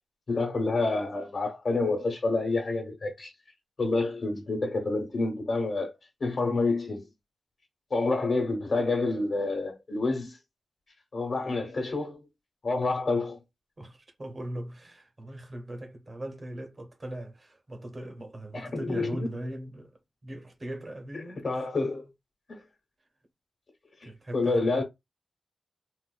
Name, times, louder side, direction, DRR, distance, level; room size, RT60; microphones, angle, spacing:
voice 1, 0.3-3.3 3.8-7.1 7.9-10.4 11.1-12.2 12.6-13.4 18.5-19.3 21.1-22.1 22.5-22.6 24.0-24.8, left 3 dB, 55° left, 1.1 m, -28 dB
voice 2, 13.8-21.7 24.0-24.8, right 1 dB, 35° right, 0.8 m, -39 dB
4.0 x 2.5 x 2.3 m
wide cardioid pair, 160°, 0 cm